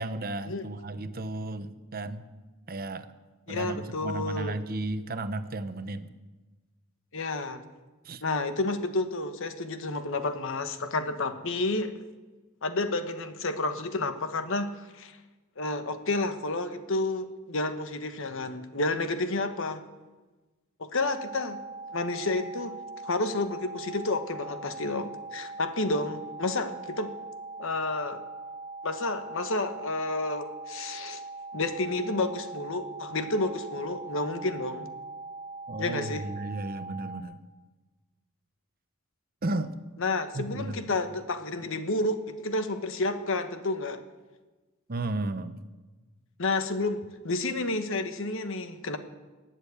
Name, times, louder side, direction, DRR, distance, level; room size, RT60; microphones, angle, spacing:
voice 1, 0.0-2.2 2.7-3.1 3.5-6.1 8.0-8.2 35.7-37.4 39.4-39.8 40.3-41.0 44.9-45.6, right 2 dB, 45° right, 11 dB, 0.9 m, -34 dB
voice 2, 3.5-4.5 7.1-7.6 8.2-11.9 12.6-15.2 15.6-19.8 20.8-21.6 21.9-22.8 23.0-27.1 27.6-28.2 28.8-31.2 31.5-34.9 35.8-36.2 40.0-44.0 46.4-49.0, left 2 dB, 65° left, 9 dB, 1.1 m, -30 dB
sound 1, 21.0-37.2, right 3 dB, 10° right, 1.2 m, -41 dB
19.5 x 7.5 x 8.3 m, 1.2 s
head